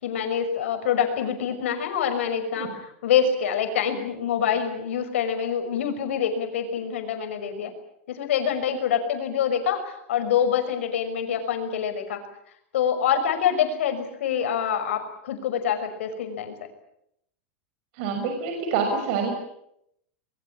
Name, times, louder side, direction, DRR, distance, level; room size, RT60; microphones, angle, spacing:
voice 1, 0.0-7.7 8.1-12.2 12.7-16.5, left 8 dB, 85° left, 6 dB, 5.9 m, -26 dB
voice 2, 18.0-19.3, right 5 dB, 60° right, 4 dB, 6.2 m, -26 dB
25.0 x 22.0 x 8.6 m, 0.77 s
supercardioid pair, 145°, 7 cm